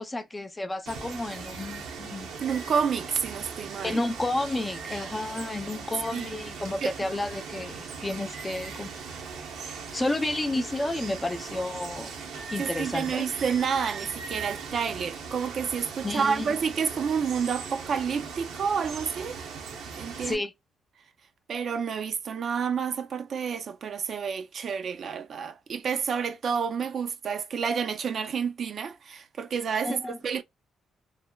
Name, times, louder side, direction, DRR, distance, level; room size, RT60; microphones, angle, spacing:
voice 1, 0.0-2.3 3.8-8.9 9.9-12.1 12.5-13.3 16.0-16.5 20.2-20.5 29.8-30.2, left 2 dB, 20° left, 0.4 m, -31 dB
Water, 0.9-20.4, right 5 dB, 85° right, 0.8 m, -39 dB
voice 2, 2.4-4.0 6.1-6.4 6.8-6.9 12.6-19.4 19.9-20.4 21.5-30.4, right 6 dB, 55° right, 0.4 m, -29 dB
3.1 x 2.1 x 2.2 m
cardioid pair, 90°, 0 cm